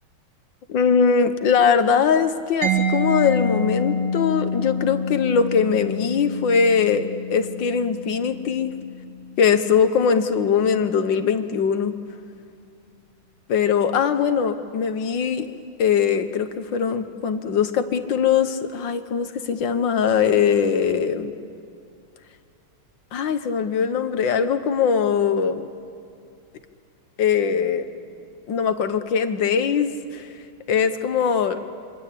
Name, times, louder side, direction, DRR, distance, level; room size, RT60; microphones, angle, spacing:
voice 1, 0.7-8.7 9.4-12.0 13.5-15.5 15.8-21.3 23.1-25.7 27.2-27.9 28.5-30.3 30.7-31.6, left 6 dB, 65° left, 9 dB, 1.8 m, -21 dB
Mallet percussion, 2.6-10.2, left 1 dB, 80° right, 3.6 m, -28 dB
27.0 x 24.5 x 8.6 m, 2.5 s
omnidirectional pair, 2.3 m